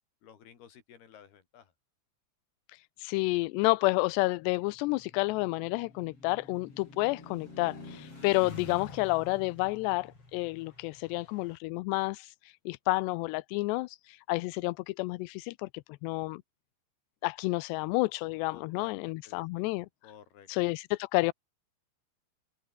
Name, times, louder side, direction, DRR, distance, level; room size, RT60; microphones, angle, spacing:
voice 1, 0.2-1.7 18.5-19.6 20.0-20.5, left 8 dB, 65° left, 5.0 m, -54 dB
voice 2, 2.7-16.4 17.2-19.9 20.5-21.3, left 22 dB, 85° left, 2.7 m, -30 dB
sound 1, 4.1-11.6, left 3 dB, 30° left, 7.8 m, -49 dB
open air
omnidirectional pair, 4.9 m